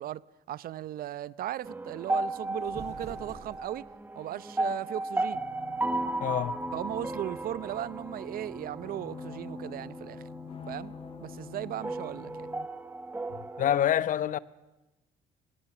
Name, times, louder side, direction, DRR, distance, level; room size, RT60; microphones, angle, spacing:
voice 1, 0.0-3.9 4.1-5.4 6.7-10.2 10.7-10.9 11.2-12.5, right 12 dB, 60° right, 0.7 m, -37 dB
sound 1, 1.6-13.8, right 2 dB, 10° right, 1.4 m, -35 dB
sound 2, 2.3-4.0, right 4 dB, 40° right, 5.8 m, -47 dB
sound 3, 5.3-12.7, left 7 dB, 35° left, 1.2 m, -47 dB
voice 2, 6.2-6.6 13.6-14.4, left 10 dB, 50° left, 0.9 m, -26 dB
24.0 x 21.0 x 7.2 m
cardioid pair, 110°, 17 cm